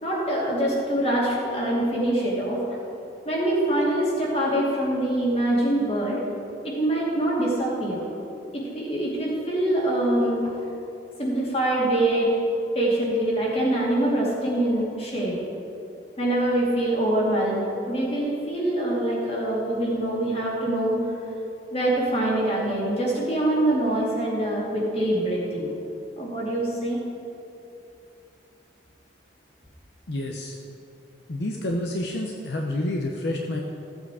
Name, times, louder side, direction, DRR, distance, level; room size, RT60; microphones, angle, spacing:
voice 1, 0.0-2.6 3.2-6.2 6.6-8.0 8.5-10.4 11.2-12.3 12.7-15.4 16.2-21.0 21.7-25.7 26.2-27.0, right 1 dB, 30° left, -4 dB, 2.5 m, -24 dB
voice 2, 30.1-30.6 31.3-33.6, left 1 dB, 65° left, 1 dB, 0.8 m, -28 dB
14.5 x 7.9 x 4.9 m, 2.8 s
head